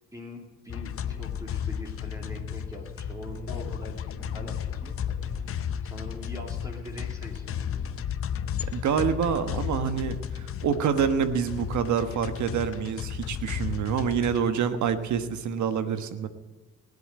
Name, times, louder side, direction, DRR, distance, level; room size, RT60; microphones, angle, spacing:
voice 1, 0.0-8.0, left 1 dB, 10° right, 0 dB, 2.8 m, -43 dB
sound 1, 0.7-14.4, left 9 dB, 45° left, 0.7 m, -34 dB
sound 2, 0.8-15.6, right 2 dB, 30° right, 5.9 m, -47 dB
voice 2, 8.7-16.3, right 7 dB, 70° right, 10 dB, 1.3 m, -27 dB
19.5 x 8.0 x 8.9 m, 1.2 s
cardioid pair, 90°, 30 cm